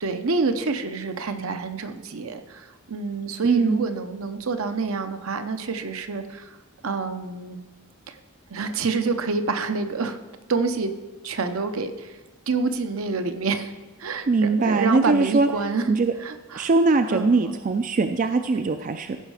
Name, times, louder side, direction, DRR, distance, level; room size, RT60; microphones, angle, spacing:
voice 1, 0.0-6.6 6.8-7.6 8.1-8.2 8.5-10.2 10.5-10.9 11.2-12.2 12.5-13.7 14.0-15.9 16.2-16.7 17.1-17.6, right 4 dB, 70° right, 8 dB, 0.8 m, -27 dB
voice 2, 3.4-3.8 14.3-15.5 15.9-16.1 16.6-19.2, right 3 dB, 40° right, 8 dB, 0.4 m, -21 dB
15.5 x 5.5 x 4.8 m, 1.3 s
head